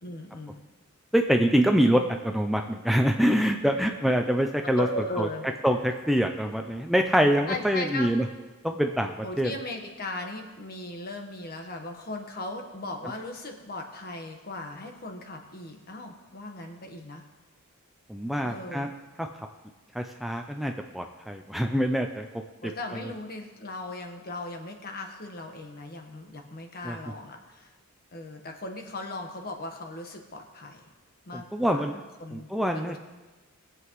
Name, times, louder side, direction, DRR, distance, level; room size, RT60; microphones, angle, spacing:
voice 1, 0.0-0.6 4.6-5.5 7.5-8.1 9.2-17.2 18.4-18.9 22.6-27.7 28.1-30.8 31.3-32.5 32.7-33.0, left 2 dB, 45° left, 3 dB, 1.3 m, -37 dB
voice 2, 1.1-4.9 5.2-5.3 5.6-8.2 8.6-9.5 18.1-18.9 19.2-19.3 19.9-22.3 26.8-27.0 31.3-31.9 32.3-33.0, equal, ahead, 4 dB, 0.5 m, -25 dB
21.0 x 7.9 x 3.2 m, 1.2 s
head